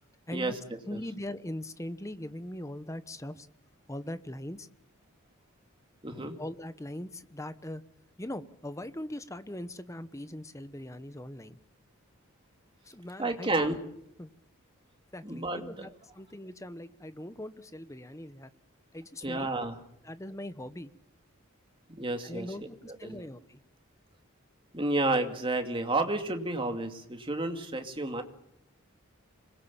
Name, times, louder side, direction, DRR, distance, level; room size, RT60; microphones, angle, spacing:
voice 1, 0.3-3.5 3.9-4.7 6.1-7.8 8.2-11.6 12.8-13.8 14.2-14.3 15.1-18.5 18.9-19.5 20.0-20.9 22.2-23.6, left 1 dB, 15° left, 12 dB, 1.0 m, -41 dB
voice 2, 6.0-6.4 13.2-13.8 15.2-15.9 19.2-19.8 22.0-22.5 22.9-23.2 24.7-28.2, right 2 dB, 25° right, 5 dB, 2.6 m, -31 dB
26.0 x 21.5 x 7.3 m, 0.75 s
head